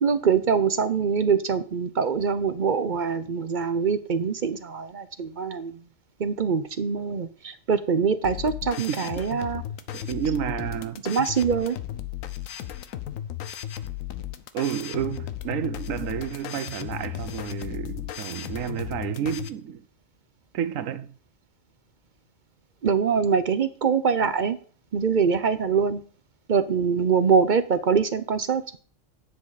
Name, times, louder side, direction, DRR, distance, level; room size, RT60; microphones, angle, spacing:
voice 1, 0.0-5.7 6.2-9.6 11.0-11.8 22.8-24.6 24.9-26.0 26.5-28.6, right 6 dB, 50° right, 0.6 m, -24 dB
sound 1, 8.2-19.5, left 11 dB, 85° left, 1.1 m, -35 dB
voice 2, 9.9-11.0 14.5-19.8 20.5-21.1, right 9 dB, 80° right, 1.1 m, -30 dB
10.0 x 7.6 x 4.0 m
omnidirectional pair, 1.4 m